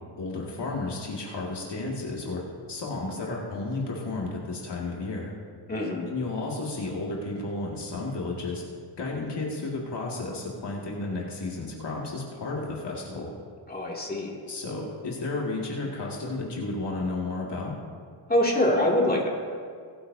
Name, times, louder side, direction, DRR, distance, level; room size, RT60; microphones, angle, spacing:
voice 1, 0.2-2.4 2.7-5.3 6.1-8.6 9.0-13.3 14.5-17.7, left 3 dB, 60° left, -3 dB, 2.4 m, -32 dB
voice 2, 5.7-6.1 13.7-14.3 18.3-19.3, left 1 dB, 20° left, -3 dB, 2.7 m, -24 dB
21.0 x 8.6 x 2.8 m, 2.1 s
cardioid pair, 70°, 48 cm